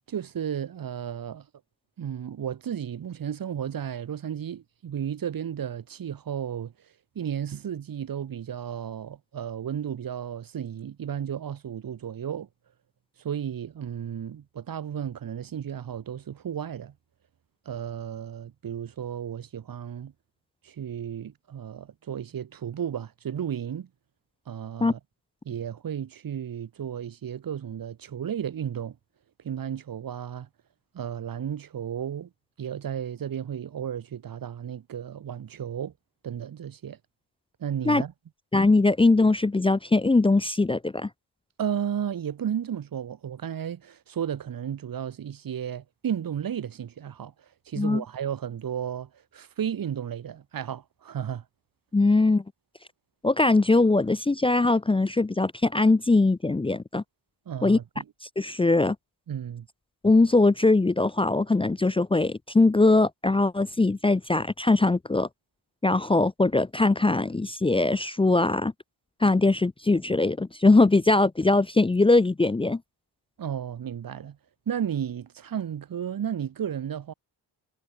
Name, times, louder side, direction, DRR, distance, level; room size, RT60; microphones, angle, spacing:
voice 1, 0.1-1.5 2.0-6.7 7.1-12.5 13.2-16.9 17.7-20.1 20.6-23.9 24.5-25.0 25.4-29.0 29.4-30.5 30.9-32.3 32.6-35.9 36.2-37.0 37.6-38.1 41.6-47.3 47.7-51.4 57.5-58.0 59.3-59.7 73.4-74.4 74.7-77.1, right 9 dB, 50° right, 4.3 m, -33 dB
voice 2, 38.5-41.1 47.8-48.0 51.9-52.4 53.2-57.0 57.6-57.8 58.4-59.0 60.0-65.3 65.8-68.7 69.2-72.8, left 2 dB, 10° left, 0.8 m, -21 dB
wide cardioid pair, 165°, 45 cm